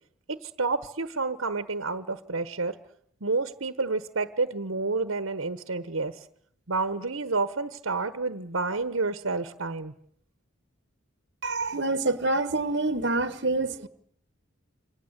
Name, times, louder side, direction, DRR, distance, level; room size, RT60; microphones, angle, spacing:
voice 1, 0.3-2.8 3.2-6.2 6.7-9.9, right 3 dB, 80° right, 12 dB, 1.3 m, -29 dB
voice 2, 11.4-13.9, right 2 dB, 55° right, 13 dB, 1.5 m, -26 dB
28.0 x 25.0 x 8.2 m, 0.67 s
head